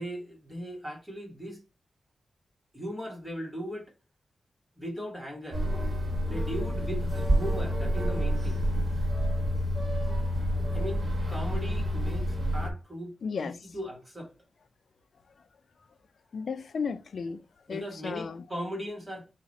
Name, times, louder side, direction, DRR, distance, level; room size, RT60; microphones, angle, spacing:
voice 1, 0.0-1.6 2.7-3.9 4.8-5.6 6.2-8.6 10.7-14.3 17.7-19.3, equal, 5° right, 1.4 m, -38 dB
sound 1, 5.5-12.7, equal, 35° right, 1.3 m, -28 dB
voice 2, 13.2-13.6 16.3-17.4 17.7-18.4, left 5 dB, 55° left, 0.3 m, -34 dB
4.9 x 2.4 x 4.0 m
wide cardioid pair, 160°, 0 cm